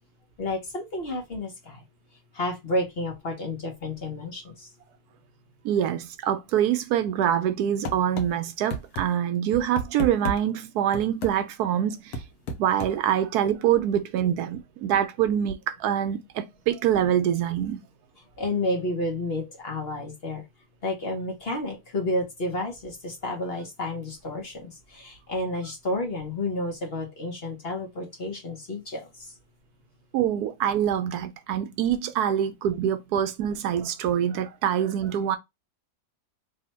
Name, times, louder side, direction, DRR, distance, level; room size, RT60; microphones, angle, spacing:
voice 1, 0.4-1.8 2.3-4.7 18.4-20.4 20.8-29.3, left 1 dB, 45° left, 1.0 m, -31 dB
voice 2, 5.6-12.2 12.6-17.8 30.1-35.4, right 10 dB, 75° right, 1.0 m, -25 dB
sound 1, 7.8-8.3 8.7-9.0 9.5-10.4 10.9-11.3 12.1-12.9, equal, 70° left, 1.3 m, -31 dB
3.3 x 2.8 x 4.2 m
omnidirectional pair, 1.7 m